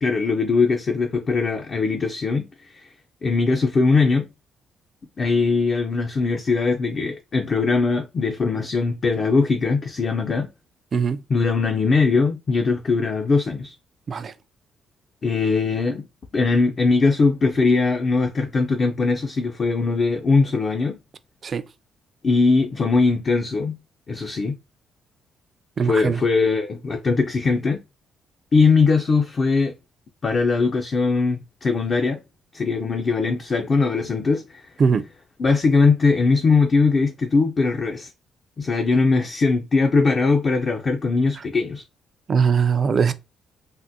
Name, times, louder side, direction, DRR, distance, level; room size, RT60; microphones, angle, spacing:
voice 1, 0.0-2.9 3.2-4.3 5.2-10.5 11.3-13.8 15.2-16.0 16.3-21.0 22.2-23.8 24.1-24.6 25.8-27.8 28.5-29.7 30.2-32.2 32.5-34.6 35.4-38.1 38.6-41.8, left 4 dB, 45° left, 0.4 m, -20 dB
voice 2, 10.9-11.2 14.1-14.3 21.4-21.6 25.8-26.2 34.8-35.1 41.4-41.5 42.3-43.1, right 6 dB, 45° right, 0.3 m, -21 dB
3.5 x 2.1 x 2.6 m
cardioid pair, 90°, 0 cm